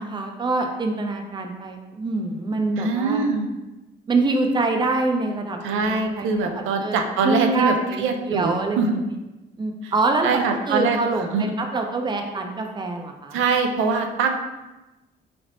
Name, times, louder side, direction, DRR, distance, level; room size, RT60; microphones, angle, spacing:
voice 1, 0.0-3.3 4.1-7.0 7.2-8.8 9.6-13.4, right 3 dB, 20° right, 3 dB, 0.5 m, -25 dB
voice 2, 2.8-3.5 5.6-9.0 9.8-9.9 10.2-11.0 11.3-11.5 13.3-14.3, right 4 dB, 90° right, 4 dB, 0.5 m, -23 dB
4.0 x 3.3 x 2.6 m, 1.1 s
cardioid pair, 90°, 20 cm